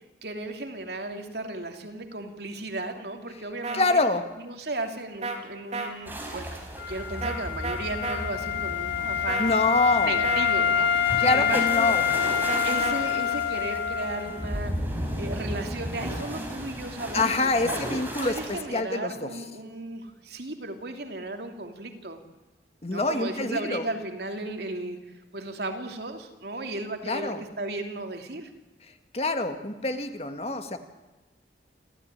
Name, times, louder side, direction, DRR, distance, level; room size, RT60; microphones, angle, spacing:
voice 1, 0.2-4.0 4.4-9.5 10.0-12.0 12.6-14.7 15.2-17.8 18.2-22.2 22.9-25.0 25.3-28.5, right 2 dB, 70° right, 5 dB, 2.8 m, -35 dB
sound 1, 3.6-3.8 5.2-5.4 5.7-5.9 7.2-7.4 7.6-8.2 9.3-9.6 10.2-10.5 12.5-12.9, right 3 dB, 40° right, 3.3 m, -31 dB
voice 2, 3.7-4.2 9.4-10.1 11.2-12.0 17.1-19.3 22.8-23.8 27.0-27.4 29.1-30.8, left 2 dB, 35° left, 8 dB, 1.7 m, -25 dB
sound 2, 6.1-18.6, equal, 10° right, 4.7 m, -35 dB
Wind instrument woodwind instrument, 6.8-14.5, left 8 dB, 85° left, 1.7 m, -26 dB
29.0 x 14.0 x 10.0 m, 1.1 s
head